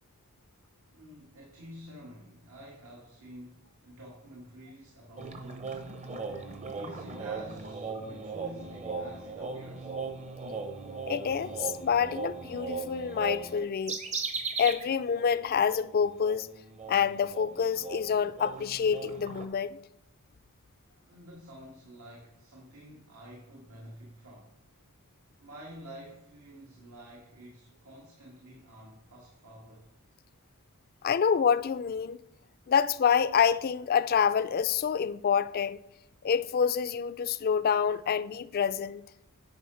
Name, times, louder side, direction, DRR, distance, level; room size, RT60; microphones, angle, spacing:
voice 1, 0.9-5.9 6.7-10.0 21.0-24.5 25.4-29.9, equal, 80° right, 1.9 m, -49 dB
sound 1, 5.2-14.9 15.1-15.3 15.7-19.4, right 4 dB, 35° right, 0.9 m, -38 dB
voice 2, 11.1-14.0 14.6-16.5 16.9-19.8 31.0-32.2 32.7-35.8 36.2-39.0, left 7 dB, 45° left, 0.4 m, -27 dB
9.6 x 5.1 x 5.6 m
head